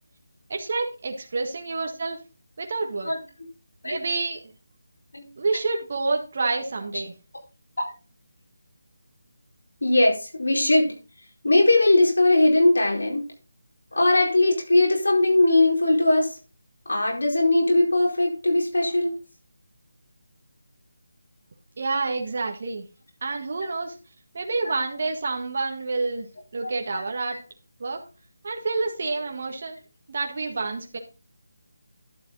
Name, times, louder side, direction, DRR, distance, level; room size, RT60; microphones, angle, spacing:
voice 1, 0.5-2.2 2.6-3.1 3.8-4.4 5.4-7.1 21.8-22.8 23.2-24.0 24.3-26.3 26.5-27.4 27.8-28.0 28.4-29.8 30.1-31.0, right 3 dB, 45° right, 2 dB, 1.7 m, -28 dB
voice 2, 9.8-11.0 11.4-13.2 13.9-16.3 16.9-19.1 24.6-24.8 26.9-27.0 27.3-27.4, left 2 dB, 85° left, 0 dB, 4.5 m, -20 dB
11.5 x 6.8 x 4.0 m, 0.31 s
figure-of-eight pair, 170°, 0 cm